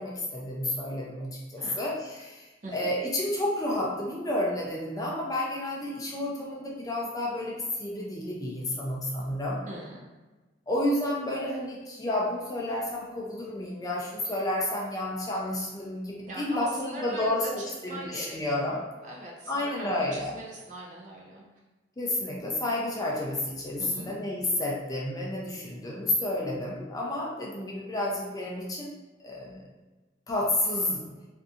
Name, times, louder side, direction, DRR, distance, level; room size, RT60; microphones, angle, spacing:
voice 1, 0.0-9.6 10.7-18.8 19.5-20.3 22.0-29.0 29.2-29.7 30.3-31.0, left 1 dB, 20° left, -3 dB, 0.4 m, -31 dB
voice 2, 9.7-10.0 16.3-18.7 19.0-21.4 23.8-24.1, right 1 dB, 45° right, -3 dB, 0.6 m, -41 dB
2.6 x 2.5 x 2.3 m, 1.2 s
head